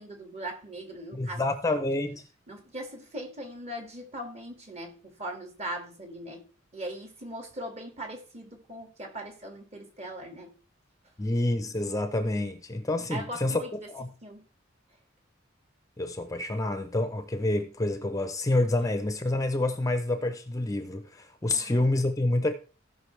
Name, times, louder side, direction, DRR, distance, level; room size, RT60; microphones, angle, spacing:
voice 1, 0.0-1.4 1.7-1.8 2.5-10.6 13.1-13.9 14.2-14.4 21.5-21.9, right 1 dB, 35° right, 1.8 m, -40 dB
voice 2, 1.1-2.2 11.2-13.6 13.9-14.1 16.0-22.5, left 2 dB, 15° left, 0.6 m, -28 dB
16.5 x 5.6 x 3.2 m
head